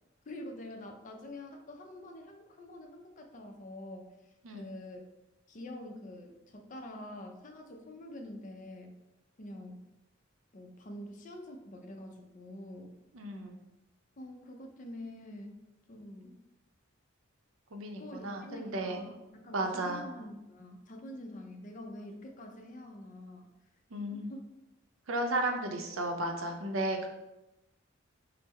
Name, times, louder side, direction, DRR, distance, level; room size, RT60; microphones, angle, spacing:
voice 1, 0.3-5.1 5.5-9.0 9.4-9.9 10.5-13.0 14.2-15.6 15.9-16.4 18.0-23.5 24.1-24.4, left 1 dB, 40° left, 3 dB, 0.4 m, -46 dB
voice 2, 13.1-13.6 17.7-19.1 19.5-20.1 23.9-24.3 25.1-27.1, right 1 dB, 80° right, 3 dB, 0.6 m, -34 dB
3.6 x 2.0 x 4.1 m, 0.98 s
head